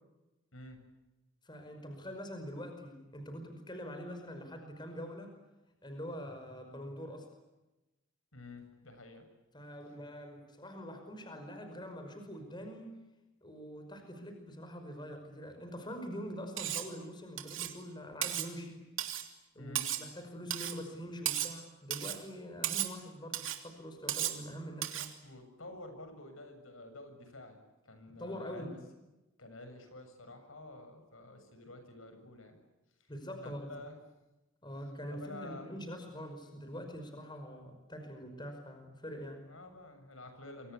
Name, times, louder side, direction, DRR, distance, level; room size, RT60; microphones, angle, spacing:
voice 1, 1.4-5.4 5.8-7.3 9.5-13.0 13.4-18.9 19.5-25.2 28.1-28.7 33.1-33.7 34.6-39.4, equal, 20° left, 6 dB, 5.4 m, -44 dB
voice 2, 8.3-9.2 19.6-19.9 25.2-27.6 27.9-28.8 29.4-32.6 33.4-34.0 35.1-35.7 39.4-40.7, left 2 dB, 80° left, 7 dB, 7.3 m, -49 dB
Cutlery silverware, 16.6-16.9 17.4-17.8 18.2-18.5 19.0-19.3 19.8-20.1 20.5-20.8 21.3-21.6 21.9-22.2 22.6-22.9 23.3-23.6 24.1-24.4 24.8-25.1, right 12 dB, 70° right, 3.0 m, -35 dB
28.5 x 25.0 x 8.4 m, 1.0 s
head